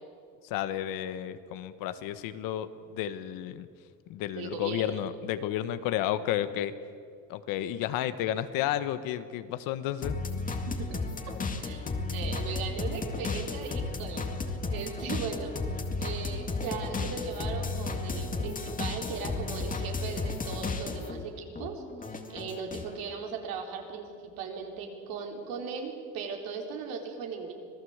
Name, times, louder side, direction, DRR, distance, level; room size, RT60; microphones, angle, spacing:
voice 1, 0.4-3.7 4.1-6.7 7.3-10.2, left 11 dB, 70° left, 12 dB, 1.4 m, -32 dB
voice 2, 4.4-5.0 10.7-11.0 11.6-14.3 14.7-27.5, right 5 dB, 75° right, 2 dB, 4.2 m, -38 dB
sound 1, 10.0-21.2 21.5-22.9, left 3 dB, 25° left, 1.9 m, -33 dB
26.0 x 17.0 x 8.1 m, 2.2 s
cardioid pair, 120°, 35 cm